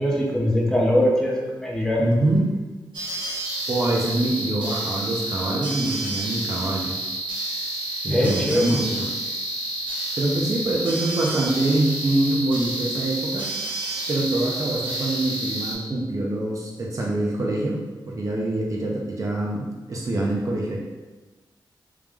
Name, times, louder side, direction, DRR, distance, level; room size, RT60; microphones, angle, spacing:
voice 1, 0.0-2.0 8.1-8.8, left 1 dB, 5° left, -4 dB, 0.6 m, -22 dB
voice 2, 2.0-2.5 3.7-7.0 8.0-9.1 10.2-13.5 14.1-17.8 18.0-20.8, right 2 dB, 40° right, -2 dB, 0.7 m, -25 dB
sound 1, 2.9-15.7, right 2 dB, 70° right, 1.3 m, -30 dB
3.4 x 3.1 x 3.5 m, 1.2 s
wide cardioid pair, 150°, 8 cm